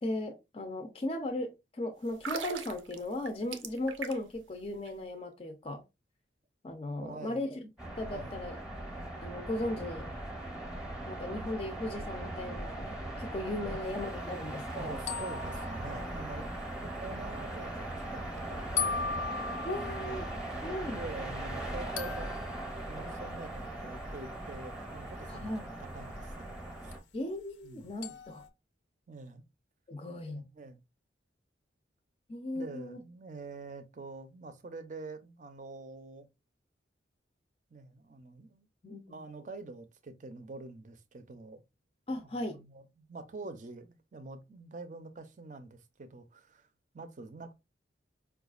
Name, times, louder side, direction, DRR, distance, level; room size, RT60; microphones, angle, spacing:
voice 1, 0.0-5.8 6.6-7.6 8.0-8.6 9.2-10.1 11.1-15.0 19.6-21.1 25.3-25.7 27.1-28.4 29.9-30.4 32.3-33.0 38.8-39.2 42.1-42.6, left 1 dB, 30° left, 0.4 m, -37 dB
sound 1, 2.1-4.4 4.7-4.9, right 5 dB, 90° right, 0.5 m, -40 dB
voice 2, 7.0-7.4 8.1-8.4 13.6-13.8 14.7-19.1 19.7-20.4 20.9-22.5 22.9-26.5 26.8-27.0 27.6-27.9 29.1-29.4 30.2-30.8 32.5-36.3 37.7-38.7 39.1-41.6 42.3-46.7 46.9-47.5, right 3 dB, 40° right, 0.5 m, -46 dB
sound 2, 7.8-27.0, right 1 dB, 5° right, 0.7 m, -39 dB
sound 3, 15.1-17.0 18.8-21.1 22.0-22.8 26.9-27.0 28.0-28.5, left 5 dB, 85° left, 0.6 m, -38 dB
4.8 x 2.3 x 2.3 m
head